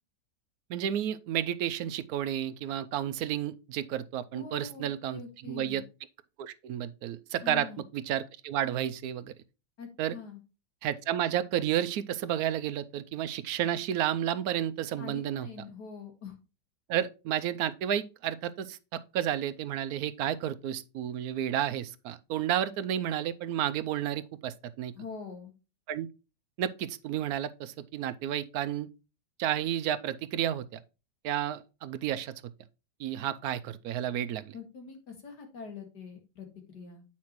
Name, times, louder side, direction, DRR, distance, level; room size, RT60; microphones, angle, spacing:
voice 1, 0.7-5.2 5.5-5.8 6.4-7.7 7.9-9.3 10.0-10.1 10.8-15.5 16.9-24.9 25.9-26.1 26.6-28.9 29.4-30.8 31.2-32.3 33.0-34.5, right 11 dB, 70° right, 0.9 m, -31 dB
voice 2, 4.3-5.8 7.4-7.8 9.8-10.4 15.0-16.4 24.9-25.5 34.5-37.0, left 5 dB, 65° left, 2.4 m, -44 dB
8.5 x 5.8 x 3.0 m
omnidirectional pair, 1.9 m